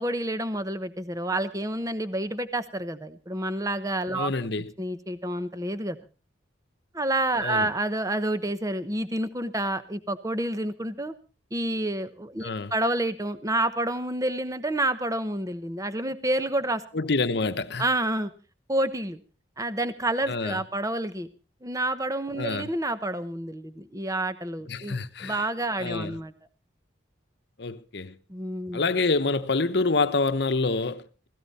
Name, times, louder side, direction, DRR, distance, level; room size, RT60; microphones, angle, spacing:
voice 1, 0.0-4.3 4.8-6.0 6.9-11.1 11.5-16.8 17.8-18.3 18.7-19.2 19.6-21.3 21.6-26.3 28.3-28.8, right 1 dB, 15° right, 0.9 m, -29 dB
voice 2, 4.1-4.7 7.4-7.7 12.4-12.7 16.9-17.8 20.3-20.6 22.4-22.7 24.7-25.5 25.8-26.2 27.6-28.2 28.7-31.3, left 3 dB, 60° left, 1.0 m, -27 dB
16.5 x 16.5 x 4.2 m
head